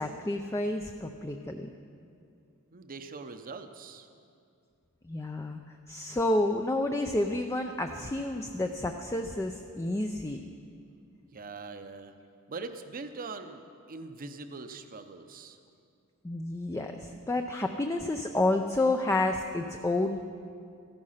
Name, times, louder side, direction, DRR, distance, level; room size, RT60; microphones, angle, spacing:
voice 1, 0.0-1.7 5.0-10.4 16.2-20.3, left 2 dB, 15° left, 4 dB, 0.4 m, -30 dB
voice 2, 2.7-4.1 11.3-12.1 12.5-15.6, right 3 dB, 40° right, 9 dB, 0.7 m, -42 dB
14.0 x 11.5 x 5.6 m, 2.4 s
head